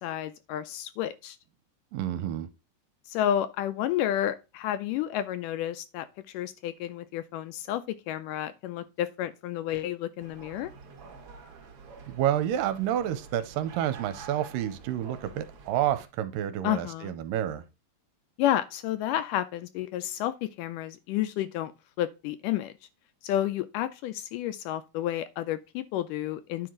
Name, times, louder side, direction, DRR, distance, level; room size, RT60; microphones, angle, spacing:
voice 1, 0.0-1.4 3.1-10.7 16.6-17.1 18.4-21.7 22.0-22.7 23.2-26.7, left 12 dB, 80° left, 2.0 m, -31 dB
voice 2, 1.9-2.5 12.1-17.6, right 11 dB, 80° right, 2.4 m, -29 dB
sound 1, 10.2-16.1, right 5 dB, 55° right, 1.7 m, -48 dB
9.8 x 4.8 x 3.8 m
omnidirectional pair, 4.1 m